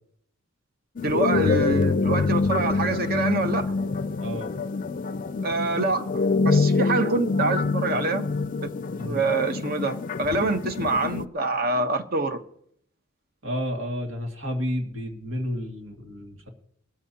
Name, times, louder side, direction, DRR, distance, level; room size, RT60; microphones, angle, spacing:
sound 1, 1.0-11.3, left 4 dB, 40° left, 0.4 m, -26 dB
voice 1, 1.0-3.7 5.4-8.2 9.1-12.4, right 2 dB, 45° right, 1.0 m, -25 dB
voice 2, 4.2-4.5 9.0-9.2 13.4-16.5, equal, 85° right, 2.2 m, -31 dB
20.0 x 13.5 x 2.9 m
head